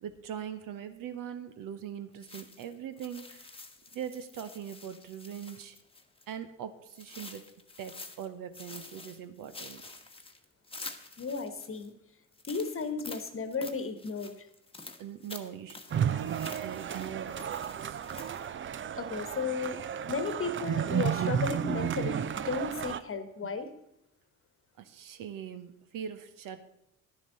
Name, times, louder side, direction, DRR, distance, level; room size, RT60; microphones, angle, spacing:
voice 1, 0.0-3.5 3.9-5.8 6.3-7.5 7.8-9.8 15.0-16.3 16.6-18.0 23.4-23.5 24.8-26.6, right 9 dB, 55° right, 10 dB, 1.0 m, -41 dB
sound 1, 2.2-6.3 6.9-8.3 8.5-11.9 12.3-18.5, left 3 dB, 15° left, 1.3 m, -48 dB
voice 2, 11.2-11.9 12.5-14.5 18.9-19.8 20.1-23.7, left 4 dB, 35° left, 10 dB, 1.4 m, -34 dB
sound 2, 15.9-23.0, right 8 dB, 30° right, 0.6 m, -32 dB
11.5 x 10.5 x 4.0 m, 0.82 s
figure-of-eight pair, 50°, 39 cm